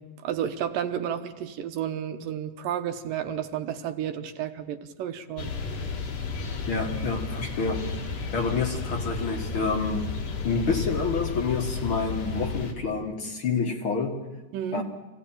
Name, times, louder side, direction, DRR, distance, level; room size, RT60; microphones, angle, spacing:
voice 1, 0.0-5.6 14.5-14.8, right 9 dB, 80° right, 7 dB, 2.7 m, -32 dB
sound 1, 5.4-12.7, left 4 dB, 80° left, 4.0 m, -32 dB
voice 2, 6.7-10.2 10.4-14.3 14.7-14.8, left 4 dB, 45° left, 3 dB, 2.1 m, -28 dB
26.0 x 16.0 x 8.9 m, 1.2 s
omnidirectional pair, 4.0 m